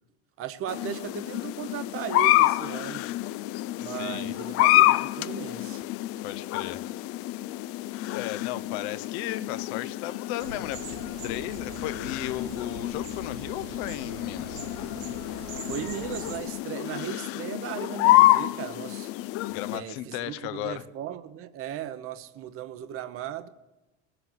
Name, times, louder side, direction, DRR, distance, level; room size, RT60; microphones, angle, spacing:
voice 1, 0.4-3.1 3.8-5.8 15.7-19.1 19.7-23.5, right 10 dB, 40° right, 0.9 m, -37 dB
sound 1, 0.7-19.8, left 16 dB, 45° left, 0.4 m, -27 dB
voice 2, 3.8-4.4 6.2-6.8 8.1-11.0 11.2-14.7 19.5-20.8, left 14 dB, 70° left, 0.9 m, -35 dB
sound 2, 10.4-16.4, right 4 dB, 85° right, 2.3 m, -42 dB
20.5 x 7.9 x 7.9 m
supercardioid pair, 130°, 33 cm